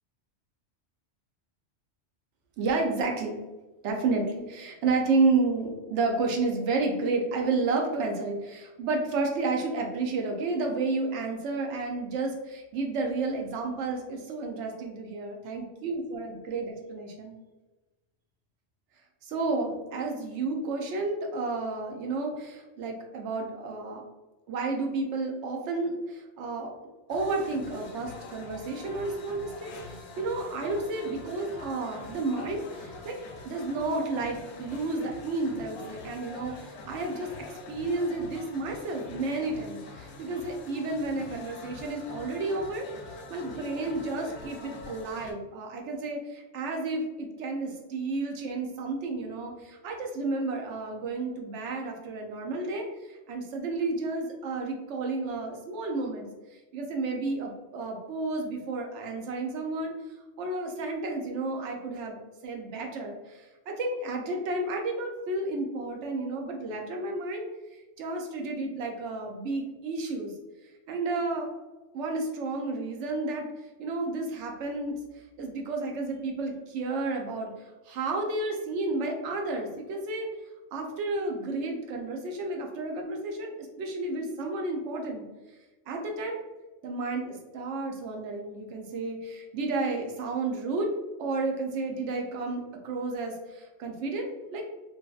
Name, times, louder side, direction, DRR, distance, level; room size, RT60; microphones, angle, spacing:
voice 1, 2.6-3.4 3.8-17.4 19.2-24.0 24.5-26.7 27.1-33.2 33.4-37.3 37.7-42.9 43.3-56.3 56.7-59.9 60.4-62.2 62.4-67.5 68.0-70.3 70.9-71.5 71.9-75.0 75.4-77.5 77.8-80.3 80.7-85.3 85.9-86.4 86.8-90.9 91.2-94.6, right 3 dB, 90° right, 2 dB, 0.9 m, -31 dB
sound 1, 27.1-45.3, left 3 dB, 75° left, 0.8 m, -45 dB
2.6 x 2.5 x 2.3 m, 1.1 s
omnidirectional pair, 1.2 m